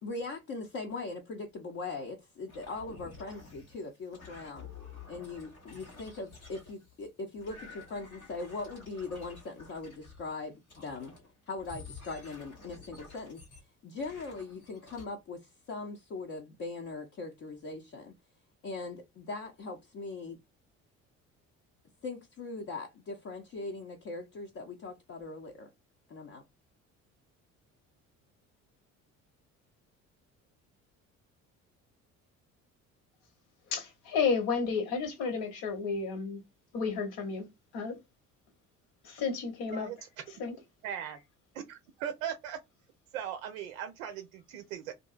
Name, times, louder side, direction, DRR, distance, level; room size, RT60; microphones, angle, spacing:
voice 1, 0.0-4.7 5.1-11.2 11.5-13.4 13.8-18.2 18.6-20.4 22.0-25.7 26.1-26.4, left 3 dB, 35° left, 0.6 m, -40 dB
sound 1, 2.5-7.1 7.4-10.3 10.7-11.3 11.6-13.6 14.0-15.0, left 4 dB, 90° left, 1.1 m, -51 dB
voice 2, 33.7-36.4 36.7-37.5 37.7-38.0 39.0-39.9 40.4-40.5, left 5 dB, 60° left, 1.0 m, -32 dB
voice 3, 40.8-41.2 41.5-42.6 43.1-44.9, right 9 dB, 70° right, 0.5 m, -38 dB
2.6 x 2.6 x 2.4 m
figure-of-eight pair, 55°, 42 cm